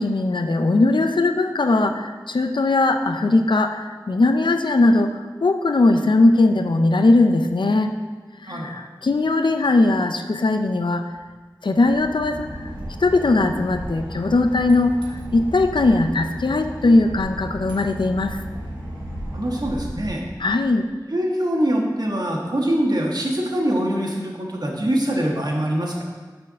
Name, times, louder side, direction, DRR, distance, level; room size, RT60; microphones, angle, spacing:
voice 1, 0.0-7.9 8.4-11.1 11.6-12.7 13.0-18.4 20.4-20.9, left 2 dB, 90° left, 7 dB, 0.5 m, -19 dB
Boat Water vehicle / Engine, 11.9-20.8, equal, 90° right, 1.8 m, -34 dB
voice 2, 19.3-20.2 21.1-26.0, right 1 dB, 60° right, -1 dB, 1.3 m, -23 dB
6.4 x 4.6 x 6.2 m, 1.4 s
wide cardioid pair, 45°, 8 cm